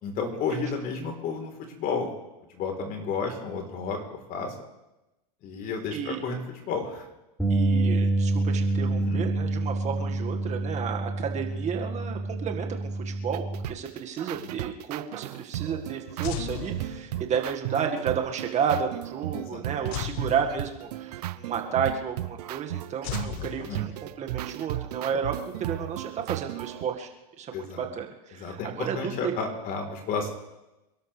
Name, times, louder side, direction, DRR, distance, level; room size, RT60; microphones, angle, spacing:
voice 1, 0.0-2.1 2.5-4.5 5.4-7.1 8.9-9.2 14.3-14.5 19.3-20.0 23.2-23.9 27.5-27.9 28.4-30.3, left 5 dB, 45° left, 3 dB, 3.9 m, -32 dB
voice 2, 5.9-6.2 7.5-25.3 25.7-27.1 27.4-29.3, right 7 dB, 35° right, 3 dB, 1.9 m, -32 dB
Bass guitar, 7.4-13.6, right 2 dB, ahead, 4.8 m, -27 dB
sound 1, 13.3-26.8, right 14 dB, 75° right, 0.8 m, -35 dB
sound 2, 16.2-17.5 19.9-21.2 23.0-24.3, left 14 dB, 60° left, 1.0 m, -37 dB
27.5 x 12.5 x 3.4 m, 0.96 s
hypercardioid pair, 100°, 20 cm